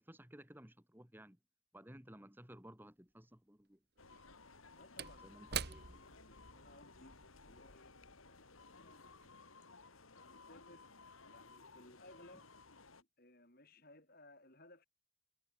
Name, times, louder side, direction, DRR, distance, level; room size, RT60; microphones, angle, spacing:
voice 1, 0.0-1.4 1.7-3.8 5.2-6.0, right 1 dB, 10° right, 2.6 m, -57 dB
Slam / Wood, 2.5-2.6 4.1-8.8 9.1-9.3, right 7 dB, 50° right, 1.5 m, -47 dB
sound 1, 4.0-13.0, left 3 dB, 85° left, 3.1 m, -59 dB
voice 2, 4.7-8.0 8.2-9.3 9.8-10.9 11.3-12.5 13.0-14.9, left 1 dB, 45° left, 7.4 m, -62 dB
head